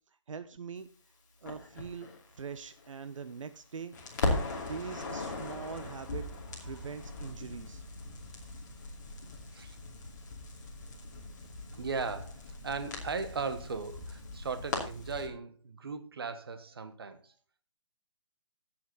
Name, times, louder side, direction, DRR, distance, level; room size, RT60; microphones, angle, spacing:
voice 1, 0.3-0.9 1.4-2.1 2.4-4.0 4.5-6.2 6.6-7.8, right 6 dB, 80° right, 11 dB, 0.9 m, -42 dB
Crackle, 1.5-3.6 3.9-15.3, left 2 dB, 35° left, 2.6 m, -39 dB
voice 2, 11.7-17.3, right 4 dB, 50° right, 9 dB, 1.3 m, -37 dB
15.5 x 6.1 x 4.0 m, 0.35 s
hypercardioid pair, 180°, 16 cm